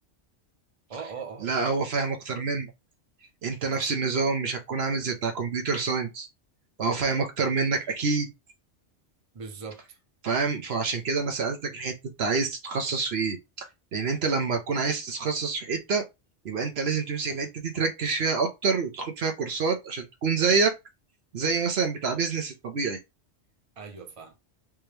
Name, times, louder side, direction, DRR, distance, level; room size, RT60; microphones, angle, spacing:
voice 1, 0.9-1.7 3.7-4.0 9.3-10.0 23.8-24.3, right 5 dB, 30° right, 0.8 m, -40 dB
voice 2, 1.4-2.7 3.4-6.3 6.8-8.3 10.2-11.9 12.2-16.0 16.4-20.7 21.3-23.0, right 4 dB, 65° right, 1.0 m, -27 dB
3.5 x 2.9 x 3.2 m
omnidirectional pair, 1.2 m